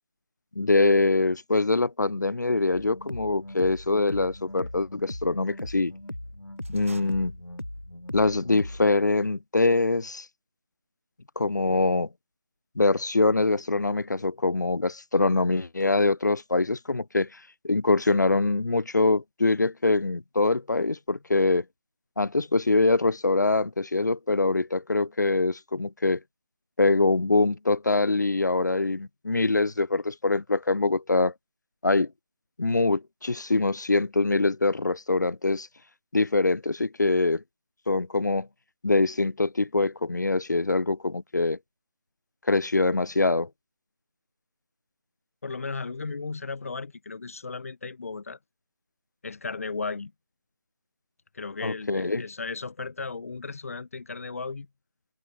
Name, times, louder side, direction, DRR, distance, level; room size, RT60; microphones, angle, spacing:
voice 1, 0.6-5.9 6.7-7.3 8.1-10.2 11.4-12.1 12.8-17.3 17.6-21.6 22.2-26.2 26.8-31.3 31.8-32.1 32.6-35.7 36.1-37.4 37.9-38.5 38.8-41.6 42.5-43.5 51.6-52.3, left 3 dB, 65° left, 1.0 m, -24 dB
sound 1, 2.7-8.8, left 1 dB, 85° left, 3.7 m, -39 dB
sound 2, 6.6-7.9, right 4 dB, 40° right, 4.4 m, -51 dB
voice 2, 45.4-48.4 49.2-50.1 51.3-54.7, left 4 dB, 45° left, 1.3 m, -35 dB
open air
figure-of-eight pair, 160°, 11 cm